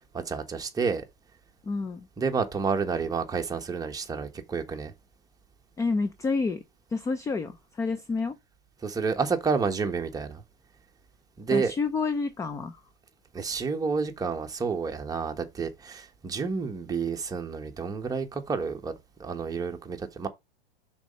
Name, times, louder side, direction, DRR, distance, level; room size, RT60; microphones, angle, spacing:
voice 1, 0.1-1.0 2.2-4.9 8.8-10.4 11.4-11.7 13.3-18.9 19.2-20.3, right 5 dB, 10° right, 1.2 m, -29 dB
voice 2, 1.7-2.1 5.8-6.6 6.9-8.4 11.5-12.8, left 4 dB, 10° left, 0.5 m, -29 dB
6.1 x 4.2 x 5.2 m
hypercardioid pair, 130°, 31 cm